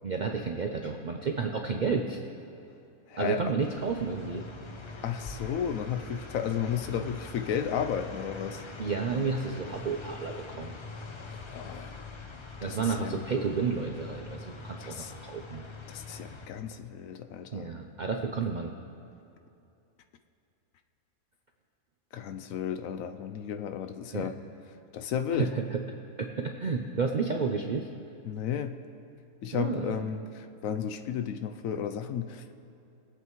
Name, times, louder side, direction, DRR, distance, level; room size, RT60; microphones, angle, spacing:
voice 1, 0.0-2.2 3.2-4.4 8.8-10.7 12.6-15.0 15.2-15.6 17.5-18.7 24.1-24.3 25.4-25.8 26.2-27.8 29.5-30.0, right 5 dB, 60° right, 2 dB, 0.5 m, -31 dB
voice 2, 3.1-3.4 5.0-8.6 11.3-12.0 12.6-13.2 14.8-15.1 15.9-17.7 22.1-24.4 24.9-25.5 28.3-28.8 29.4-32.5, left 8 dB, 75° left, 7 dB, 1.0 m, -33 dB
sound 1, 3.6-16.5, left 3 dB, 40° left, 0.4 m, -43 dB
22.0 x 8.1 x 3.1 m, 2.7 s
omnidirectional pair, 1.5 m